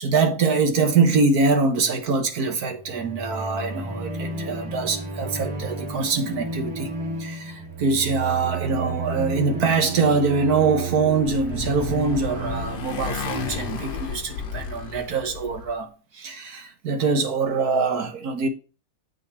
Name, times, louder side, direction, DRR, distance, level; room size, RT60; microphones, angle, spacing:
voice 1, 0.0-6.9 7.2-18.5, right 4 dB, 50° right, 1.4 m, -24 dB
sound 1, 2.7-13.7, right 3 dB, 70° right, 3.0 m, -32 dB
Motorcycle, 10.7-15.7, left 6 dB, 55° left, 1.7 m, -33 dB
7.8 x 5.4 x 4.2 m
omnidirectional pair, 2.4 m